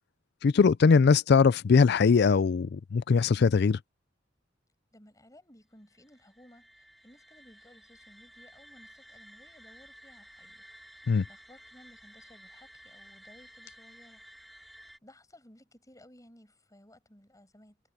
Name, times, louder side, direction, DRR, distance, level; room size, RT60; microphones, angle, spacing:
voice 1, 0.4-3.8 11.1-11.2, left 5 dB, 55° left, 0.4 m, -21 dB
voice 2, 4.9-10.7 11.0-14.3 14.5-14.7 15.0-17.8, left 1 dB, 20° left, 7.6 m, -58 dB
sound 1, 5.9-15.0, equal, ahead, 6.3 m, -54 dB
head